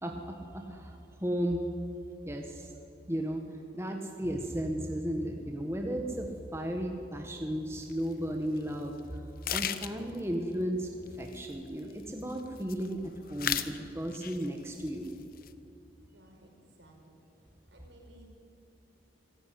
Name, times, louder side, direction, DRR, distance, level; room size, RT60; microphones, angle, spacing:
voice 1, 0.0-1.7 2.2-2.7 3.1-3.4 3.7-9.2 9.5-15.1, equal, 15° right, 3 dB, 1.6 m, -34 dB
sound 1, 7.8-8.0 8.6-8.7 9.0-9.1 9.4-10.2 11.1-12.0 12.3-12.9 13.3-13.8 14.1-14.6 14.9-15.5, left 10 dB, 50° left, 1.0 m, -35 dB
voice 2, 16.0-17.1 17.7-18.3, right 1 dB, 70° right, 1 dB, 5.8 m, -58 dB
25.0 x 16.0 x 9.7 m, 2.7 s
head